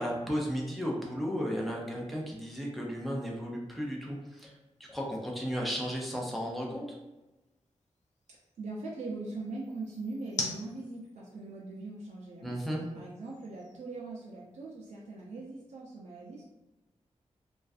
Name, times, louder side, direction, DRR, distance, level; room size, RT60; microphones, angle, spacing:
voice 1, 0.0-4.5 4.8-6.9 12.4-12.8, equal, ahead, -3 dB, 0.4 m, -34 dB
sound 1, 0.6-14.8, left 3 dB, 80° left, 0.4 m, -48 dB
voice 2, 8.6-12.6 12.9-16.4, right 3 dB, 85° right, -4 dB, 0.4 m, -41 dB
2.5 x 2.3 x 2.3 m, 1.1 s
wide cardioid pair, 165°, 12 cm